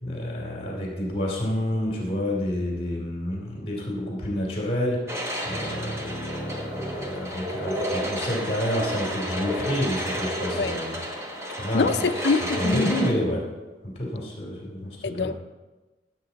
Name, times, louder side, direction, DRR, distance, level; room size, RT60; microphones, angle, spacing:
voice 1, 0.0-5.0 5.4-11.0 11.3-11.9 12.6-13.5 13.8-15.3, equal, 35° left, -2 dB, 2.7 m, -29 dB
sound 1, 5.1-13.1, equal, 15° right, 1.2 m, -31 dB
voice 2, 11.7-13.0 15.0-15.4, left 4 dB, 75° left, 11 dB, 0.5 m, -25 dB
16.5 x 7.7 x 4.0 m, 1.2 s
head